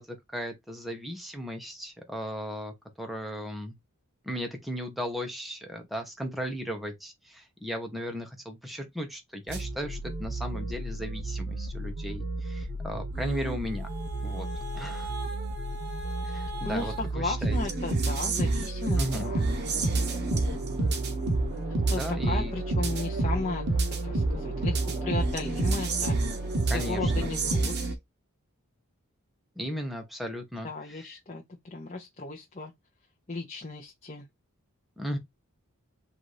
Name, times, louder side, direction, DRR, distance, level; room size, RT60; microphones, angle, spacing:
voice 1, 0.0-3.8 4.2-13.9 14.2-14.5 14.7-15.1 16.2-17.6 19.0-19.4 21.9-22.5 26.7-27.3 29.6-31.1 35.0-35.2, equal, ahead, 0.9 m, -36 dB
sound 1, 9.5-27.9, right 2 dB, 50° right, 1.1 m, -29 dB
voice 2, 16.6-19.4 21.9-23.6 24.0-26.2 26.6-27.9 30.6-32.7 33.3-34.3, left 3 dB, 30° left, 0.8 m, -35 dB
sound 2, 19.0-27.3, right 1 dB, 25° right, 1.4 m, -44 dB
4.1 x 2.7 x 4.8 m
head